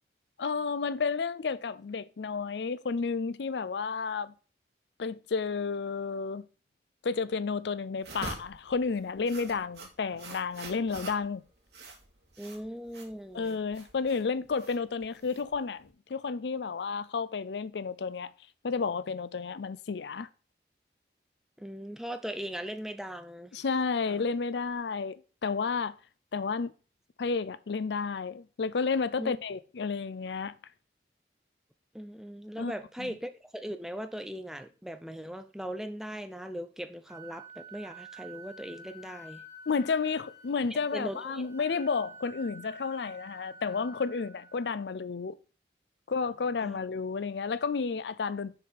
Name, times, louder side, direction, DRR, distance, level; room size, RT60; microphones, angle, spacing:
voice 1, 0.4-4.3 5.0-6.4 7.0-11.4 13.3-18.3 18.6-20.3 23.5-25.1 25.4-26.0 26.3-26.7 27.2-30.5 32.6-32.7 33.0-33.1 39.7-45.4 46.1-48.6, left 5 dB, 75° left, 0.5 m, -31 dB
sound 1, 8.0-15.9, right 3 dB, 70° right, 2.5 m, -46 dB
voice 2, 12.4-13.6 21.6-23.6 24.1-24.2 29.2-29.3 31.9-39.4 40.7-41.5 41.7-41.8 46.6-46.8, equal, 5° right, 0.5 m, -39 dB
Wind instrument woodwind instrument, 37.0-44.8, right 2 dB, 20° right, 1.8 m, -50 dB
6.7 x 4.8 x 5.3 m
head